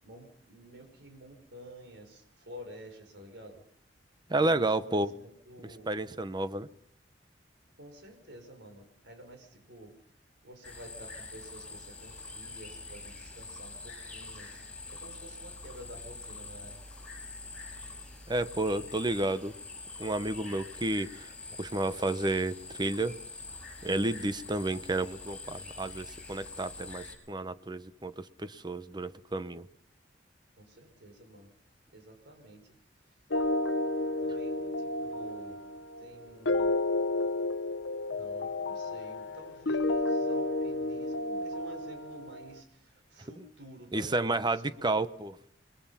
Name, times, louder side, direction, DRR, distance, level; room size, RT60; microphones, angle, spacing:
voice 1, 0.0-3.7 4.3-5.9 7.8-9.9 10.4-16.8 30.6-31.5 31.9-32.8 34.2-35.6 36.0-36.8 38.0-44.9, right 1 dB, 70° right, 5 dB, 5.3 m, -50 dB
voice 2, 4.3-5.1 5.6-6.7 18.3-19.5 20.0-21.3 21.6-23.1 23.8-29.7 43.9-45.3, right 2 dB, 25° right, 13 dB, 0.9 m, -31 dB
sound 1, 10.6-27.2, left 3 dB, 5° left, 6.6 m, -45 dB
sound 2, 33.3-42.5, left 2 dB, 80° left, 1.0 m, -31 dB
27.5 x 21.5 x 5.7 m, 0.64 s
head